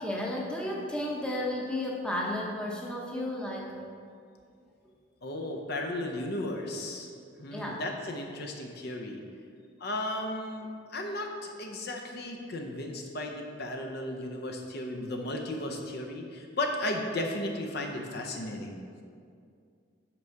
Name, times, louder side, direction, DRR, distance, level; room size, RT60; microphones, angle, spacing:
voice 1, 0.0-3.7 7.5-7.8, left 1 dB, 5° left, -2 dB, 0.8 m, -33 dB
voice 2, 5.2-7.1 7.4-9.2 9.8-18.8, left 1 dB, 55° left, 2 dB, 0.7 m, -35 dB
6.0 x 4.6 x 6.4 m, 2.3 s
head